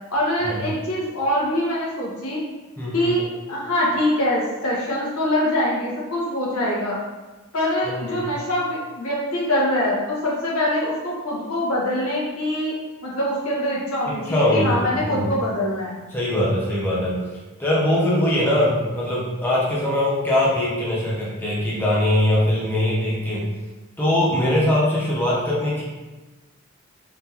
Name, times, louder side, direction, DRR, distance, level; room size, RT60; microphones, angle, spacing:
voice 1, 0.1-2.4 2.9-7.0 7.5-12.7 13.0-15.9, left 1 dB, 80° left, -6 dB, 1.3 m, -24 dB
voice 2, 2.8-3.1 7.8-8.3 14.3-15.3 16.1-17.2 17.6-23.5 24.0-25.8, left 1 dB, 10° left, -7 dB, 0.8 m, -21 dB
3.7 x 3.7 x 2.9 m, 1.2 s
head